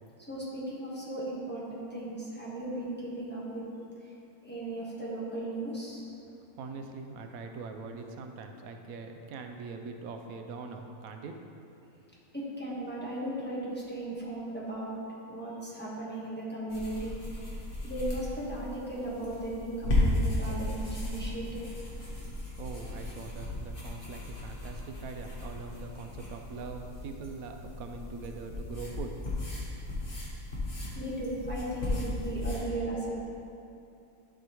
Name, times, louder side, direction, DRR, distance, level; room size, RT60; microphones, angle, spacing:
voice 1, 0.3-3.6 4.4-6.0 12.3-15.0 15.3-17.1 17.8-21.6 30.9-33.1, right 1 dB, 10° left, -7 dB, 1.2 m, -36 dB
voice 2, 6.2-11.4 22.6-29.2, right 4 dB, 80° right, 5 dB, 1.1 m, -42 dB
sound 1, 16.7-32.6, left 2 dB, 40° left, 1.6 m, -35 dB
12.0 x 4.8 x 3.0 m, 2.7 s
omnidirectional pair, 1.5 m